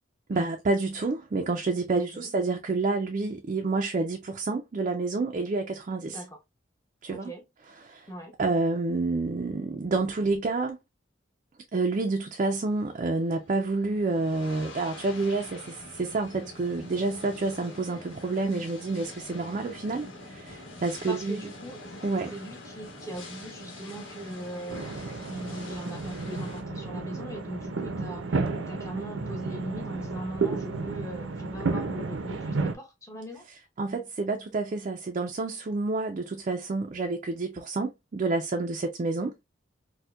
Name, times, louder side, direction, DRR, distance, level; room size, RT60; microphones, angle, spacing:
voice 1, 0.3-6.2 7.0-7.3 7.8-8.1 8.4-10.8 11.7-21.5 22.0-22.3 33.8-39.3, right 3 dB, 40° right, 0.4 m, -29 dB
voice 2, 2.0-2.3 6.1-6.4 7.1-7.4 8.1-8.4 21.1-21.9 22.3-33.4, right 1 dB, 15° left, 0.7 m, -40 dB
sound 1, 12.6-26.6, left 2 dB, 85° left, 1.2 m, -45 dB
sound 2, 24.7-32.8, right 4 dB, 85° right, 0.6 m, -32 dB
4.3 x 2.2 x 2.3 m
head